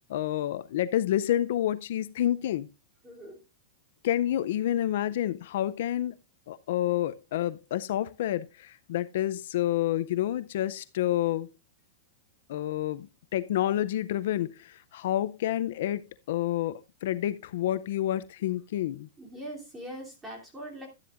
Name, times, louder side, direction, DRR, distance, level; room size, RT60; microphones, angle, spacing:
voice 1, 0.1-2.7 4.0-6.1 6.5-11.5 12.5-13.1 13.3-19.1, left 12 dB, 65° left, 0.5 m, -29 dB
voice 2, 3.0-3.4 19.2-20.9, right 1 dB, 10° right, 3.0 m, -41 dB
12.0 x 10.5 x 2.5 m
supercardioid pair, 160°, 0 cm